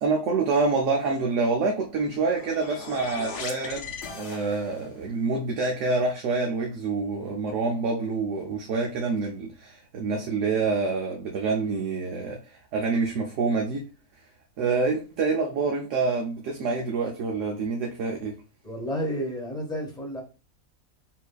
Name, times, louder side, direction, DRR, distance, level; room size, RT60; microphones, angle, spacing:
voice 1, 0.0-12.4 12.7-13.8 14.6-18.4, right 4 dB, 65° right, 1.0 m, -27 dB
sound 1, 1.9-5.0, left 5 dB, 60° left, 1.0 m, -39 dB
voice 2, 18.6-20.2, equal, 5° left, 1.1 m, -31 dB
5.7 x 2.6 x 2.3 m
omnidirectional pair, 1.5 m